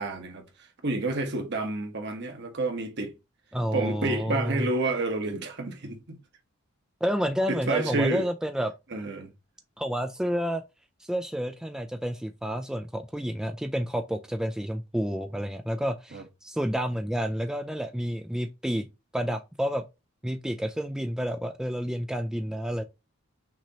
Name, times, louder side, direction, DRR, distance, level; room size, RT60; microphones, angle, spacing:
voice 1, 0.0-3.1 3.7-6.2 7.5-8.3 8.9-9.3 16.1-16.2, right 2 dB, 55° right, 1.2 m, -29 dB
voice 2, 3.5-4.7 7.0-8.7 9.8-10.6 11.0-18.9 19.1-19.8 20.2-22.8, equal, 5° right, 0.3 m, -30 dB
5.9 x 2.9 x 2.8 m
head